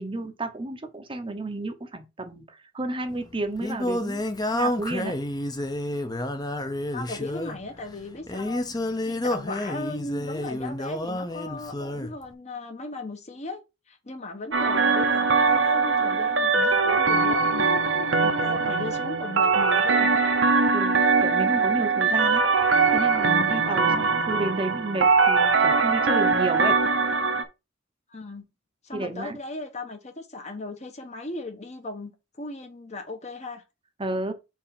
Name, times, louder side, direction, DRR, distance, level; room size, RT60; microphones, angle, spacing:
voice 1, 0.0-4.2 4.5-5.1 20.7-22.5 22.9-26.8 28.9-29.4 34.0-34.3, right 2 dB, 25° right, 0.8 m, -31 dB
Singing, 3.1-12.1, left 1 dB, 20° left, 0.8 m, -30 dB
voice 2, 6.9-8.8 9.1-13.6 13.9-17.8 18.2-20.3 23.8-24.0 28.1-28.5 28.8-32.1 32.4-33.6, left 2 dB, 35° left, 1.0 m, -37 dB
sound 1, 14.5-27.4, right 4 dB, 70° right, 0.9 m, -22 dB
4.6 x 4.2 x 5.8 m
head